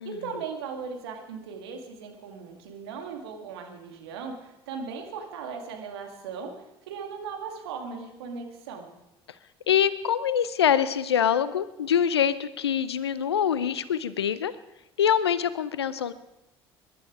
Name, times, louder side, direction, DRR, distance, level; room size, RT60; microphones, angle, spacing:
voice 1, 0.0-6.5 6.9-8.9, right 5 dB, 75° right, 3 dB, 2.3 m, -38 dB
voice 2, 9.7-14.5 15.0-16.1, left 8 dB, 85° left, 16 dB, 0.6 m, -24 dB
21.5 x 11.5 x 4.9 m, 0.91 s
hypercardioid pair, 60°, 13 cm